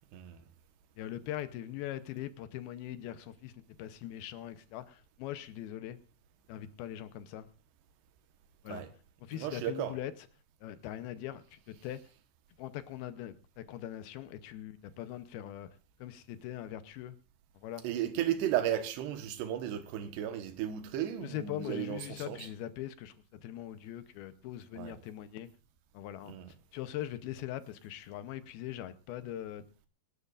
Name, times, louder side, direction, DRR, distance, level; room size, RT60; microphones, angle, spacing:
voice 1, 1.0-6.0 6.5-7.5 8.6-8.8 9.2-10.1 10.6-12.0 12.6-15.7 16.0-17.2 17.6-17.8 21.2-25.5 25.9-26.3 26.7-29.6, left 12 dB, 75° left, 2.5 m, -41 dB
voice 2, 9.3-9.9 17.8-22.5 24.7-24.9 26.3-26.5, right 11 dB, 85° right, 3.3 m, -34 dB
25.5 x 12.0 x 2.5 m
omnidirectional pair, 4.8 m